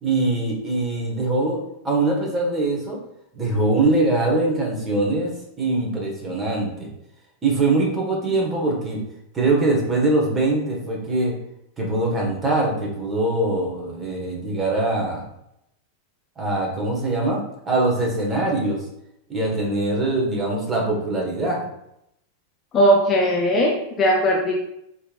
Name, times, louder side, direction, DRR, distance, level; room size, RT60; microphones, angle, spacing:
voice 1, 0.0-1.6 1.8-3.0 3.3-5.3 5.6-6.9 7.4-9.0 9.3-11.3 11.8-15.2 16.4-17.4 17.6-18.8 19.3-21.6, right 2 dB, 20° right, -1 dB, 1.4 m, -22 dB
voice 2, 22.7-24.5, equal, 25° left, -2 dB, 0.7 m, -18 dB
4.3 x 3.5 x 2.4 m, 0.80 s
figure-of-eight pair, 90°, 0 cm